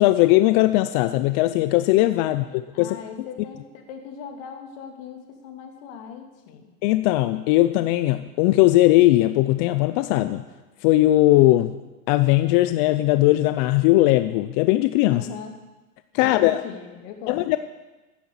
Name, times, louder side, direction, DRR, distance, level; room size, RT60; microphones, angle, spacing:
voice 1, 0.0-3.0 6.8-10.4 10.8-11.7 12.1-15.3 16.1-16.6 17.3-17.6, left 16 dB, 30° left, 12 dB, 0.4 m, -19 dB
voice 2, 2.2-6.7 15.1-15.6 16.2-17.4, left 7 dB, 50° left, 4 dB, 2.9 m, -39 dB
15.0 x 10.0 x 7.2 m, 1.1 s
hypercardioid pair, 125°, 47 cm